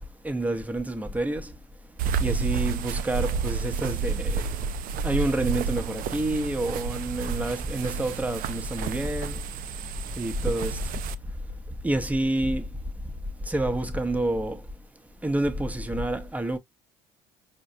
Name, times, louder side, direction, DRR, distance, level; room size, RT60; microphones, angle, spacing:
voice 1, 0.2-1.5 2.2-4.6 5.0-9.4 10.2-10.8 11.8-12.7 13.5-14.6 15.2-16.6, right 1 dB, 10° right, 0.7 m, -28 dB
sound 1, 2.0-11.1, right 6 dB, 60° right, 0.4 m, -30 dB
4.7 x 2.2 x 2.7 m
hypercardioid pair, 70°, 17 cm